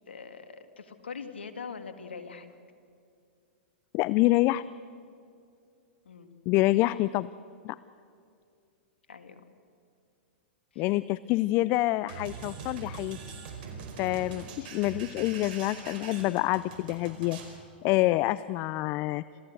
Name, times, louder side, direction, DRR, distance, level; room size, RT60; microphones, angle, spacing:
voice 1, 0.1-2.5 6.1-6.3 9.1-9.4 10.7-10.8, left 5 dB, 90° left, 9 dB, 1.9 m, -42 dB
voice 2, 3.9-4.6 6.5-7.3 7.6-7.8 10.8-13.4 14.0-17.4 17.8-19.2, left 18 dB, 40° left, 18 dB, 0.5 m, -27 dB
sound 1, 12.1-17.6, right 5 dB, 60° right, 4.8 m, -43 dB
26.5 x 16.0 x 8.0 m, 2.4 s
hypercardioid pair, 115°, 6 cm